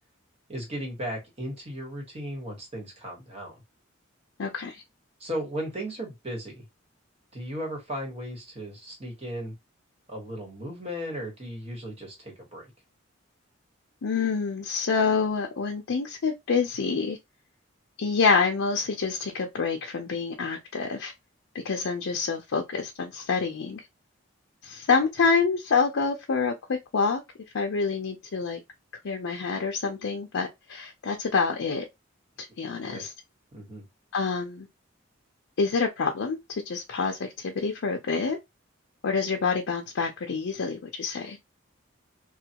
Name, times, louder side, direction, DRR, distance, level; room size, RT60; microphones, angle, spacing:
voice 1, 0.5-3.6 5.2-6.6 7.3-9.5 10.1-12.7 24.9-25.0 32.8-33.0 33.5-33.8, equal, 30° right, 1.1 m, -36 dB
voice 2, 4.4-4.8 14.0-17.2 18.0-21.1 21.5-23.8 24.6-27.2 27.5-28.6 29.0-31.9 32.6-33.1 34.1-34.7 35.6-36.4 36.7-38.4 39.0-41.4, left 5 dB, 75° left, 0.5 m, -27 dB
3.2 x 2.2 x 2.8 m
head